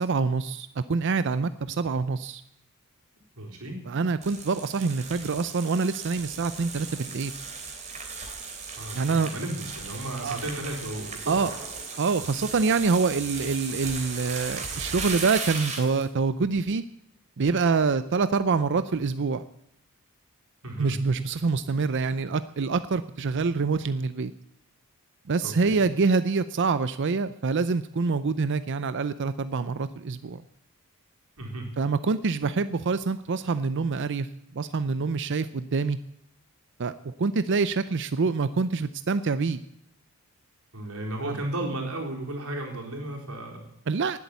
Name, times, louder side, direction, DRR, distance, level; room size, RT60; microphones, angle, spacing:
voice 1, 0.0-2.4 3.9-7.3 8.9-9.3 10.2-10.4 11.3-11.5 12.0-16.8 17.4-19.4 20.8-24.3 25.3-30.4 31.8-34.3 34.5-36.0 36.8-39.6 41.2-41.4 43.9-44.2, right 4 dB, 55° right, 13 dB, 0.5 m, -26 dB
voice 2, 3.4-3.8 8.8-11.5 20.6-21.0 25.4-25.9 31.4-31.7 40.7-43.7, right 1 dB, 85° right, 0 dB, 3.9 m, -34 dB
sound 1, 4.2-16.1, right 4 dB, 35° right, 2.9 m, -36 dB
18.5 x 8.4 x 8.4 m, 0.75 s
head